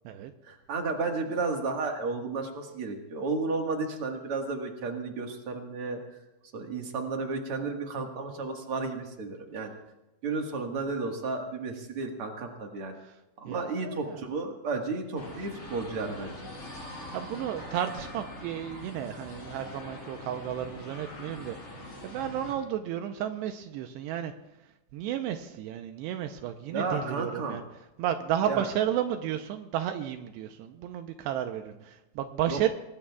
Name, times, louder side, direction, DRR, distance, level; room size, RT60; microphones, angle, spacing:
voice 1, 0.4-6.0 6.5-9.7 10.2-13.0 13.4-16.4 26.7-27.6 28.5-28.6 32.5-32.7, right 3 dB, 60° right, 2 dB, 1.5 m, -33 dB
voice 2, 13.5-14.2 17.1-24.3 24.9-27.6 28.0-32.7, right 10 dB, 80° right, 7 dB, 2.8 m, -32 dB
sound 1, 15.1-22.6, left 1 dB, 35° left, 6.7 m, -43 dB
24.5 x 20.0 x 2.4 m, 0.99 s
omnidirectional pair, 5.1 m